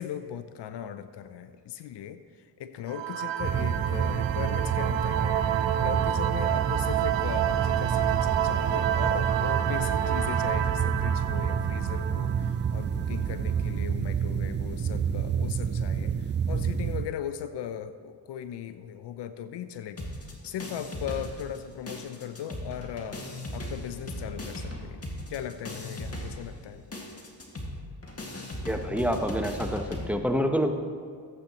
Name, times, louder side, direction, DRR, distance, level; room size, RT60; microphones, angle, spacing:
voice 1, 0.0-20.1 20.4-23.2 23.5-25.0 25.3-26.8, left 9 dB, 60° left, 11 dB, 0.7 m, -38 dB
sound 1, 2.9-13.3, right 11 dB, 70° right, 0.6 m, -29 dB
sound 2, 3.4-17.1, right 7 dB, 25° right, 0.4 m, -29 dB
sound 3, 20.0-21.6 21.9-30.1, left 1 dB, 30° left, 2.0 m, -38 dB
voice 2, 28.7-30.7, equal, 5° right, 5 dB, 0.9 m, -27 dB
15.0 x 8.2 x 3.0 m, 2.1 s
supercardioid pair, 50°, 46 cm